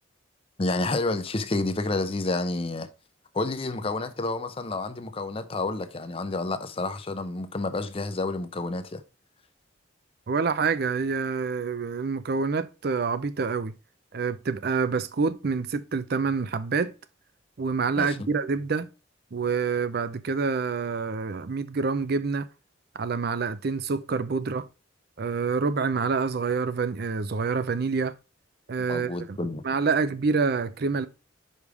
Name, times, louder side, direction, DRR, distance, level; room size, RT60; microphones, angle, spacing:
voice 1, 0.6-2.9 3.3-9.0 18.0-18.2 28.8-29.6, left 2 dB, 30° left, 0.6 m, -29 dB
voice 2, 10.3-13.7 14.1-16.9 17.6-18.9 19.3-22.5 23.0-24.7 25.2-28.1 28.7-29.4 29.6-31.1, right 4 dB, 50° right, 0.5 m, -27 dB
5.3 x 5.1 x 4.7 m
head